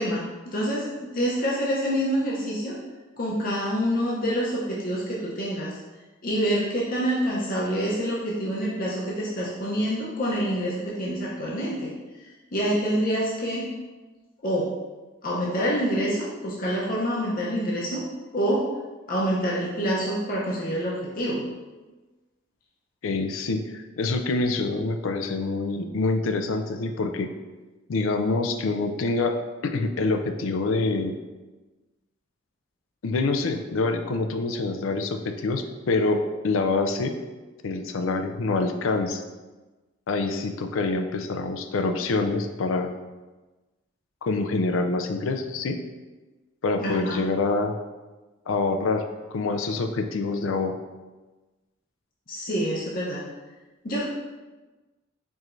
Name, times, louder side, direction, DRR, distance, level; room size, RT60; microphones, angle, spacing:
voice 1, 0.0-2.7 3.2-5.8 6.2-11.9 12.5-13.7 14.4-14.7 15.2-18.0 18.3-18.7 19.1-21.4 46.8-47.2 52.3-53.2 53.8-54.1, equal, 45° left, -5 dB, 0.7 m, -26 dB
voice 2, 23.0-27.3 27.9-29.4 29.6-31.1 33.0-37.1 37.6-39.2 40.1-42.9 44.2-45.8 46.6-47.7 48.5-50.8, left 3 dB, 85° left, 6 dB, 0.4 m, -26 dB
4.7 x 4.3 x 2.6 m, 1.2 s
head